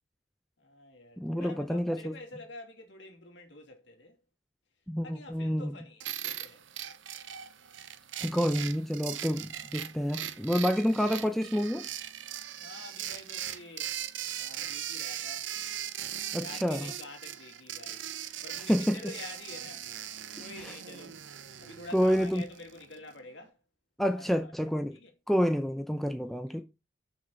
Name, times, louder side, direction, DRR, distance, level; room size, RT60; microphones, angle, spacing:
voice 1, 0.6-4.2 5.0-6.6 12.6-13.9 14.4-15.5 16.3-18.1 18.4-19.9 20.4-21.2 21.6-23.6 24.1-24.5 24.9-25.1 26.2-26.6, left 2 dB, 70° left, 2.9 m, -48 dB
voice 2, 1.2-2.1 4.9-5.7 8.2-11.9 16.3-16.9 18.7-19.0 20.6-20.8 21.9-22.4 24.0-25.0 25.3-26.6, equal, ahead, 0.6 m, -28 dB
sound 1, 6.0-23.0, right 11 dB, 80° right, 0.8 m, -40 dB
6.5 x 6.4 x 6.8 m
head